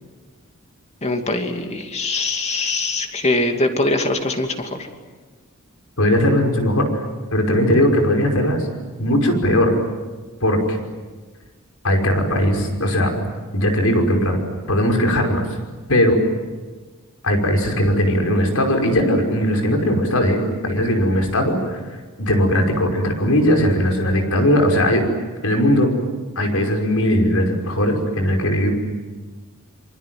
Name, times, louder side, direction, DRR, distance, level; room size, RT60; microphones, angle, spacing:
voice 1, 1.0-4.9, left 2 dB, 30° left, 4 dB, 2.7 m, -22 dB
voice 2, 6.0-7.0 7.3-8.7 9.0-9.8 10.4-10.8 11.8-13.1 13.5-14.4 14.7-15.5 15.9-16.2 17.2-21.8 22.2-25.0 25.4-25.9 26.4-28.7, equal, 85° left, 3 dB, 5.5 m, -18 dB
27.5 x 25.5 x 7.8 m, 1.4 s
head